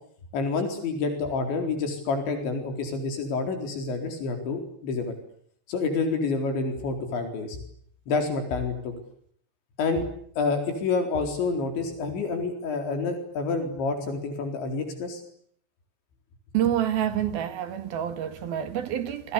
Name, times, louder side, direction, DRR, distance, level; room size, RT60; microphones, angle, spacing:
voice 1, 0.3-5.1 5.7-7.6 8.1-8.9 9.8-10.0 10.4-15.2, left 4 dB, 80° left, 6.6 m, -28 dB
voice 2, 16.5-19.3, right 10 dB, 60° right, 3.8 m, -27 dB
28.5 x 24.0 x 8.5 m
omnidirectional pair, 5.2 m